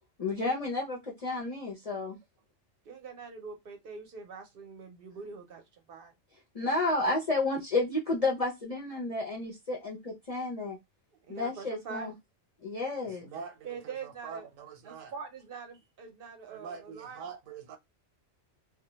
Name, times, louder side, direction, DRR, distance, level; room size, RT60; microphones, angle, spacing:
voice 1, 0.2-2.2 6.5-10.8 11.3-12.1 12.6-13.3, left 2 dB, 45° left, 0.5 m, -31 dB
voice 2, 2.8-6.1 11.3-12.1 13.6-14.5 14.8-17.2, right 5 dB, 60° right, 0.7 m, -44 dB
voice 3, 13.0-15.1 16.5-17.8, right 6 dB, 85° right, 1.0 m, -44 dB
2.2 x 2.1 x 2.9 m
omnidirectional pair, 1.3 m